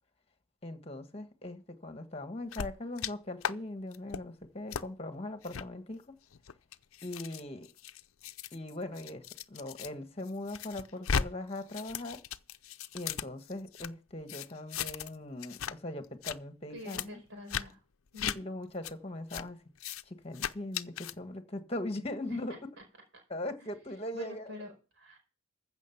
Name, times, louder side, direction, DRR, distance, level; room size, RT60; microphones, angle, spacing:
voice 1, 0.6-6.0 7.0-7.7 8.5-12.2 12.9-17.2 18.2-19.6 20.1-22.6 23.3-24.5, left 1 dB, 30° left, 1.6 m, -40 dB
sound 1, 2.5-3.1 3.4-3.5 3.9-4.2 4.7-4.8 5.4-5.6 6.3-9.9 10.2-11.3 11.5-13.9 14.3-15.2 15.4-15.7 16.0-16.4 16.9-17.1 17.5-17.6 18.2-18.4 18.8-18.9 19.3-19.4 19.8-20.0 20.3-21.1, left 7 dB, 85° left, 0.6 m, -37 dB
voice 2, 16.7-17.8 18.1-18.5 22.3-22.4 22.8-22.9 23.6-23.7 24.1-25.2, left 1 dB, 60° right, 4.9 m, -47 dB
15.0 x 6.5 x 5.9 m
head